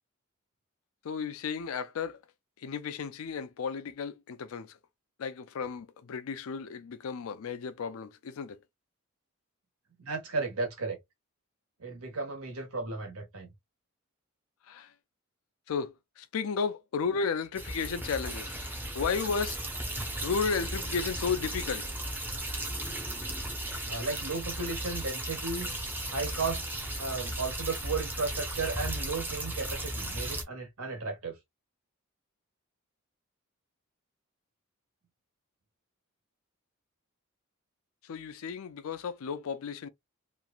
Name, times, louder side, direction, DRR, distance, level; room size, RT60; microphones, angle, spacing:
voice 1, 1.0-2.2 2.6-4.8 5.2-8.6 14.7-14.9 15.7-19.6 20.2-21.9 38.1-39.9, left 5 dB, 75° left, 0.4 m, -33 dB
voice 2, 10.0-11.0 11.8-13.5 23.9-25.7 26.1-31.4, right 4 dB, 90° right, 1.4 m, -34 dB
sound 1, 17.5-30.4, right 1 dB, 10° right, 0.6 m, -35 dB
3.0 x 2.5 x 2.3 m
head